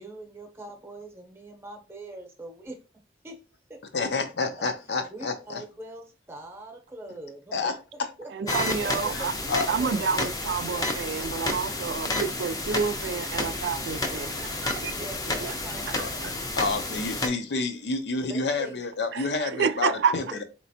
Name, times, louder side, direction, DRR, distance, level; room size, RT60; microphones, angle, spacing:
voice 1, 0.0-2.8 3.2-3.4 3.7-3.8 4.8-7.7 8.2-8.3 9.2-10.1 14.1-14.2 14.9-16.2 16.7-16.8 18.3-18.8, right 2 dB, 15° right, 0.8 m, -43 dB
voice 2, 3.9-5.6 7.5-7.7 9.1-9.2 9.5-9.7 16.0-16.1 16.6-20.4, left 3 dB, 75° left, 0.6 m, -29 dB
voice 3, 8.3-9.3 9.7-14.9 15.4-15.5 15.9-16.4 19.1-20.2, right 6 dB, 80° right, 0.4 m, -29 dB
sound 1, 8.5-17.3, left 2 dB, 20° left, 0.6 m, -31 dB
4.3 x 3.0 x 2.7 m
head